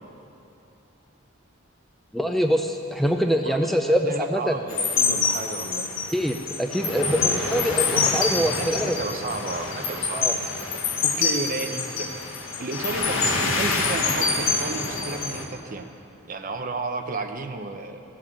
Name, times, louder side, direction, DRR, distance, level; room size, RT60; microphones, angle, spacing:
voice 1, 2.1-4.6 6.1-9.0 10.1-10.4, equal, ahead, 4 dB, 0.4 m, -24 dB
voice 2, 4.0-5.9 7.9-12.1 12.6-15.9 16.3-18.0, right 3 dB, 45° right, 6 dB, 0.7 m, -33 dB
sound 1, 4.7-15.4, left 4 dB, 80° left, 1.4 m, -26 dB
16.0 x 7.6 x 7.3 m, 2.8 s
head